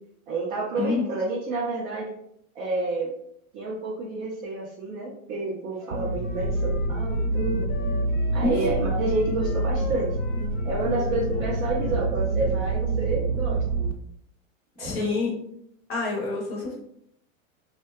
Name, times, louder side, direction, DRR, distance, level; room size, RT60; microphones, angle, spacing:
voice 1, 0.3-2.1 2.6-3.1 3.5-7.7 8.3-10.1 10.6-13.6 14.8-15.1, right 2 dB, 30° right, -3 dB, 0.4 m, -29 dB
Wind instrument woodwind instrument, 5.8-12.2, left 2 dB, 90° left, 0.6 m, -42 dB
sound 1, 5.9-13.9, right 2 dB, 80° right, 0.6 m, -27 dB
voice 2, 8.4-8.8 11.3-11.4 14.8-15.4 15.9-16.8, left 3 dB, 35° left, -1 dB, 0.7 m, -28 dB
2.6 x 2.1 x 2.2 m, 0.72 s
supercardioid pair, 135°, 41 cm